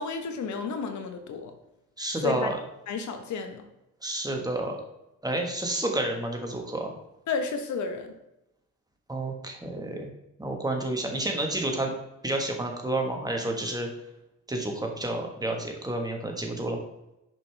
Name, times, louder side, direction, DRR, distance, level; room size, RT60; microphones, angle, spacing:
voice 1, 0.0-1.5 2.2-2.5 2.9-3.6 7.3-8.1, left 5 dB, 70° left, 6 dB, 1.1 m, -32 dB
voice 2, 2.0-2.6 4.0-4.8 5.2-6.9 9.1-10.1 10.4-11.9 12.2-13.9 14.5-16.8, right 1 dB, 15° right, 2 dB, 1.4 m, -30 dB
6.2 x 5.3 x 3.3 m, 0.89 s
cardioid pair, 90°, 30 cm